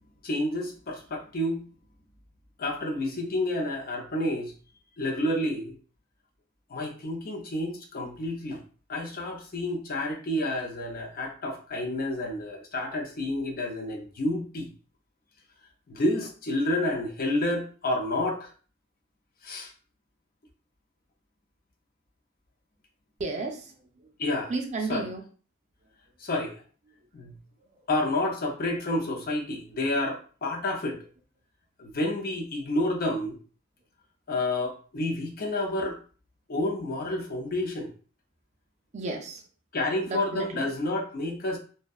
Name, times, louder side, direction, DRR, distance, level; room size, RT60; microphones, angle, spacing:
voice 1, 0.2-1.6 2.6-4.5 5.0-5.7 6.7-8.6 8.9-14.7 15.9-18.5 19.4-19.7 24.2-24.5 24.9-25.1 26.2-26.6 27.1-27.3 27.9-31.0 31.8-33.4 34.3-36.0 36.5-37.9 39.7-41.6, left 1 dB, 45° left, 1 dB, 0.5 m, -29 dB
voice 2, 23.2-23.7 24.5-25.2 38.9-39.4 40.1-40.7, right 3 dB, 30° right, 2 dB, 0.4 m, -32 dB
2.6 x 2.1 x 2.3 m, 0.40 s
head